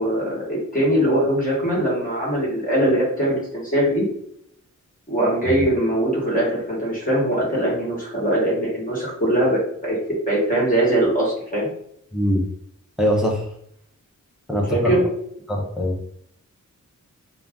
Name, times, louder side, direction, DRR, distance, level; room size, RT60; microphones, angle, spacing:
voice 1, 0.0-4.0 5.1-10.0 10.3-11.7 14.7-15.0, right 1 dB, 25° left, -4 dB, 1.2 m, -21 dB
voice 2, 13.0-13.4 14.5-15.0 15.5-16.0, equal, ahead, -1 dB, 0.5 m, -22 dB
2.4 x 2.1 x 3.4 m, 0.70 s
wide cardioid pair, 150°, 31 cm